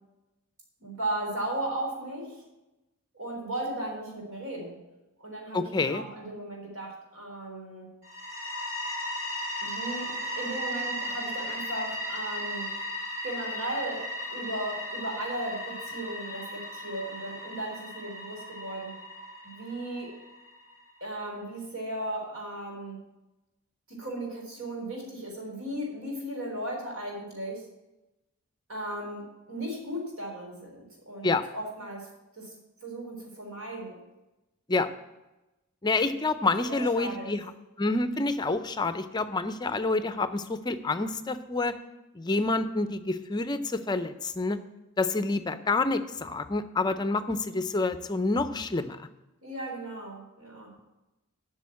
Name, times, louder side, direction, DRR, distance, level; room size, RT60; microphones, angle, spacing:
voice 1, 0.8-2.4 3.1-4.8 5.2-7.9 9.6-12.7 13.2-19.0 19.4-20.1 21.0-23.0 23.9-27.6 28.7-32.1 32.3-32.5 32.8-34.0 36.4-37.3 49.4-50.7, right 1 dB, 80° right, -1 dB, 3.8 m, -36 dB
voice 2, 5.5-6.0 31.2-31.4 34.7-34.9 35.8-37.4 37.8-41.7 42.1-44.6 45.0-49.0, left 3 dB, 20° left, 11 dB, 0.5 m, -28 dB
sound 1, 8.0-20.7, equal, 45° right, 2.0 m, -36 dB
8.9 x 6.3 x 8.5 m, 1.0 s
head